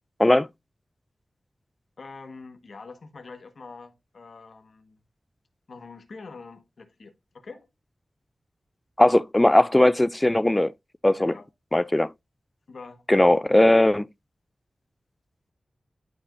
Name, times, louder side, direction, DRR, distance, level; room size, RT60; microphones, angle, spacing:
voice 1, 2.0-5.0 5.7-7.7 11.2-11.5 12.7-13.1, left 4 dB, 70° left, 1.4 m, -44 dB
voice 2, 9.0-10.7 11.0-11.3 11.7-12.1 13.1-14.1, left 1 dB, 15° left, 0.3 m, -18 dB
11.5 x 4.9 x 2.5 m
wide cardioid pair, 70°, 0 cm